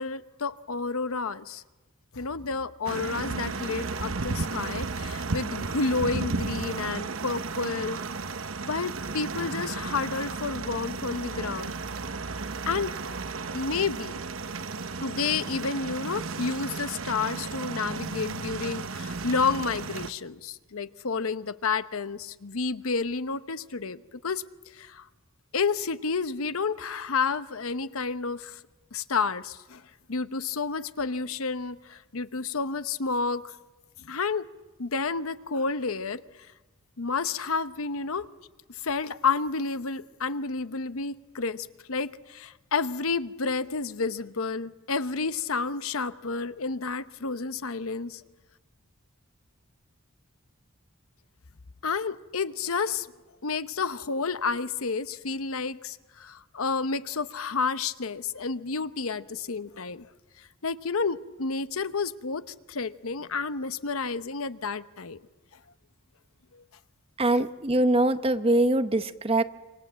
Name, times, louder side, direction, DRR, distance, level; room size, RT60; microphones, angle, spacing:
voice 1, 0.0-1.6 2.1-8.0 8.6-11.7 12.7-13.0 13.5-14.2 15.0-24.4 24.7-25.1 25.5-28.6 28.9-29.8 30.1-33.4 34.0-34.5 34.8-36.2 37.0-38.3 38.7-48.2 51.8-53.1 53.4-60.1 60.4-65.2, left 4 dB, 80° left, 0.9 m, -30 dB
sound 1, 2.8-20.1, right 4 dB, 65° right, 1.0 m, -34 dB
voice 2, 67.2-69.4, right 1 dB, 25° right, 0.9 m, -23 dB
26.5 x 25.5 x 7.5 m
head